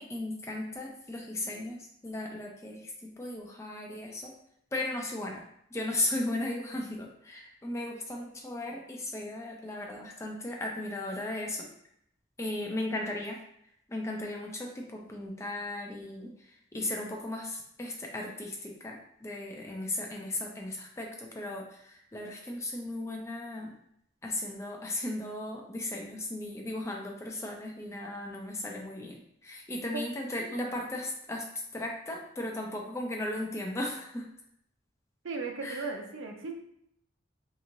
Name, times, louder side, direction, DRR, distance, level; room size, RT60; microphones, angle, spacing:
voice 1, 0.0-4.3 4.7-5.4 5.7-11.7 12.4-13.4 13.9-23.7 24.2-31.5 31.7-34.3 35.6-35.9, left 1 dB, 15° left, 0 dB, 0.4 m, -36 dB
voice 2, 35.2-36.6, right 4 dB, 85° right, 3 dB, 0.5 m, -36 dB
2.9 x 2.7 x 2.5 m, 0.73 s
head